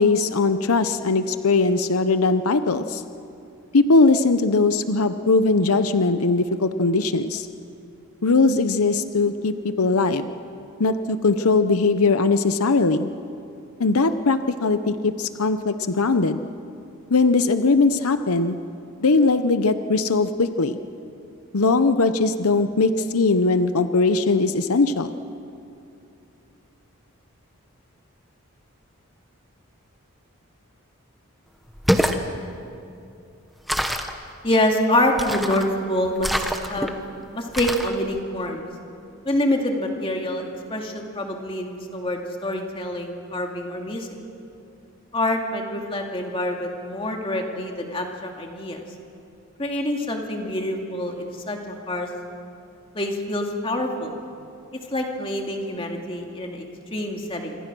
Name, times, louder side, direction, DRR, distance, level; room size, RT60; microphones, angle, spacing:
voice 1, 0.0-3.0 3.7-7.5 8.2-10.3 10.8-13.1 13.8-16.4 17.1-18.6 19.0-20.8 21.5-25.1, left 3 dB, 85° left, 10 dB, 0.8 m, -20 dB
sound 1, 31.7-32.2 33.7-34.2 35.2-35.7 36.2-36.9 37.5-37.9, equal, ahead, 1.1 m, -24 dB
voice 2, 34.4-36.9 37.3-38.7 39.2-44.1 45.1-48.8 49.6-52.1 52.9-54.1 54.9-57.6, left 1 dB, 25° left, 2 dB, 2.4 m, -26 dB
26.5 x 26.0 x 6.2 m, 2.7 s
head